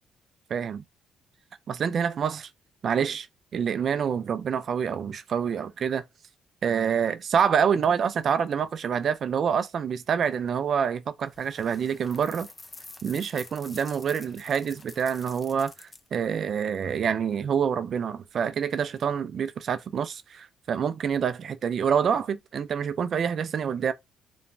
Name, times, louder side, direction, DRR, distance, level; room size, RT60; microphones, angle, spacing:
voice 1, 0.5-0.8 1.7-2.5 2.8-3.3 3.5-6.0 6.6-12.5 13.0-23.9, right 7 dB, 55° right, 0.5 m, -27 dB
sound 1, 11.3-16.2, left 2 dB, 25° left, 0.5 m, -47 dB
3.1 x 2.1 x 2.6 m
cardioid pair, 90°, 0 cm